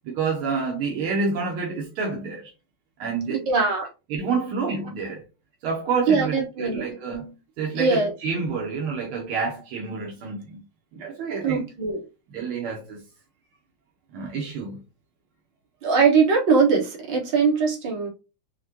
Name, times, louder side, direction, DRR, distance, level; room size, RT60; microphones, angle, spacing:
voice 1, 0.0-2.5 3.0-3.5 4.1-5.2 5.6-10.6 10.9-11.7 12.3-13.0 14.1-14.8, right 4 dB, 80° right, 1.7 m, -28 dB
voice 2, 3.5-3.9 6.1-6.8 7.8-8.1 11.4-12.0 15.8-18.1, right 5 dB, 60° right, 2.1 m, -21 dB
6.0 x 2.2 x 2.8 m
omnidirectional pair, 2.3 m